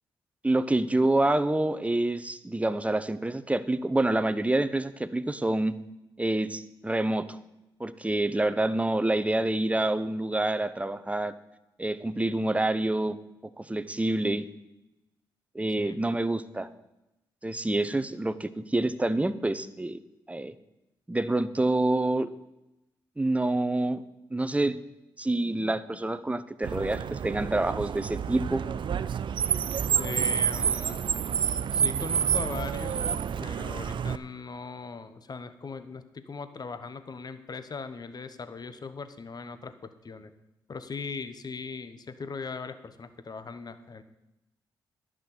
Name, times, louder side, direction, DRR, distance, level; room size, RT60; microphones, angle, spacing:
voice 1, 0.4-5.8 6.2-7.4 7.8-11.3 11.8-13.2 13.6-14.5 15.5-16.7 17.4-20.0 20.3-20.5 21.1-22.3 23.2-24.0 24.3-24.8 25.2-28.6, right 2 dB, 15° right, 12 dB, 0.9 m, -27 dB
Car, 26.6-34.2, right 8 dB, 55° right, 0.5 m, -29 dB
voice 2, 29.9-31.0 31.7-33.1 33.4-40.3 40.7-44.0, left 4 dB, 45° left, 11 dB, 1.1 m, -39 dB
11.0 x 6.2 x 8.6 m, 0.93 s
supercardioid pair, 50°, 10 cm